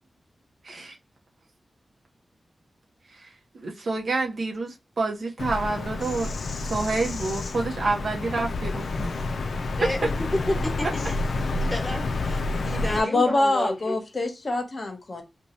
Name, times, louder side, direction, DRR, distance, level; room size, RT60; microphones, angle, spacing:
voice 1, 0.6-1.0 3.1-3.3 3.5-6.3 6.6-9.2 9.5-9.8, right 3 dB, 70° right, 0.7 m, -29 dB
Bird vocalization bird call bird song, 5.4-13.0, left 2 dB, 80° left, 0.3 m, -29 dB
voice 2, 9.8-10.1 10.5-11.2 11.7-14.0, left 1 dB, 15° left, 1.0 m, -31 dB
voice 3, 12.9-15.2, left 2 dB, 55° left, 0.8 m, -25 dB
2.7 x 2.2 x 2.9 m
wide cardioid pair, 70°, 0 cm